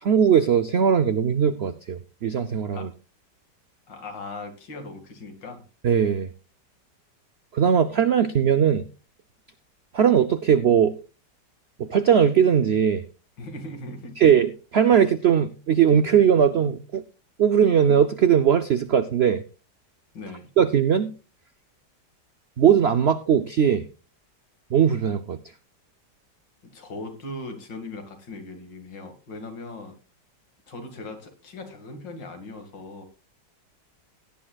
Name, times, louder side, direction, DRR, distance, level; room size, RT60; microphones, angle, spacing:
voice 1, 0.0-2.9 5.8-6.3 7.5-8.9 9.9-10.9 11.8-13.0 14.2-17.0 17.4-19.4 20.6-21.1 22.6-23.9 24.7-25.4, right 8 dB, 70° right, 11 dB, 0.6 m, -19 dB
voice 2, 3.9-5.6 13.4-14.3 20.1-20.5 26.7-30.0 30.7-33.1, left 2 dB, 80° left, 5 dB, 2.7 m, -39 dB
17.0 x 10.0 x 2.3 m, 0.33 s
omnidirectional pair, 1.9 m